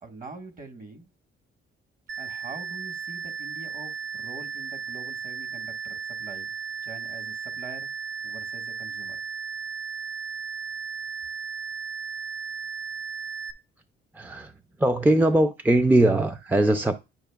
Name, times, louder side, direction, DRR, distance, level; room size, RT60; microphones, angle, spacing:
voice 1, 0.0-1.1 2.1-6.5 6.8-7.9 8.2-9.2, right 3 dB, 40° right, 1.5 m, -44 dB
sound 1, 2.1-13.5, right 6 dB, 85° right, 0.8 m, -35 dB
voice 2, 14.1-14.5 14.8-17.0, right 1 dB, 10° right, 0.4 m, -21 dB
10.0 x 4.9 x 2.3 m
cardioid pair, 90°, 20 cm